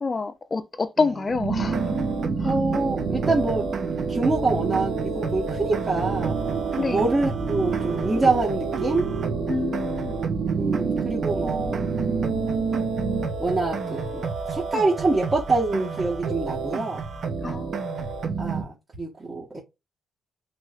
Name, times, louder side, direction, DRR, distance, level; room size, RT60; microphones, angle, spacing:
voice 1, 0.0-1.9 2.4-2.6 6.8-7.0 9.5-10.2 17.4-17.7 18.0-18.1, left 4 dB, 30° left, 0.4 m, -27 dB
sound 1, 1.3-13.3, right 5 dB, 80° right, 1.3 m, -29 dB
sound 2, 1.6-18.6, right 4 dB, 55° right, 0.5 m, -30 dB
voice 2, 2.4-3.7 4.0-6.4 6.9-9.1 10.6-11.9 13.4-14.2 14.5-17.0 18.4-19.6, right 3 dB, 30° right, 1.1 m, -25 dB
3.1 x 3.0 x 2.4 m
cardioid pair, 90°, 0 cm